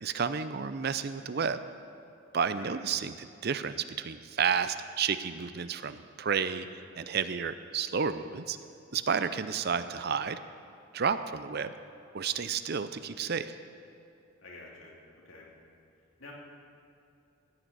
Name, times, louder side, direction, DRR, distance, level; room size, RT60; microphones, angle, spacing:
voice 1, 0.0-1.6 2.3-6.7 7.0-8.6 8.9-10.4 10.9-11.7 12.1-13.5, right 6 dB, 50° right, 12 dB, 0.5 m, -31 dB
voice 2, 14.4-15.5 16.2-16.3, left 3 dB, 75° left, -2 dB, 2.9 m, -49 dB
15.5 x 6.7 x 9.0 m, 2.7 s
head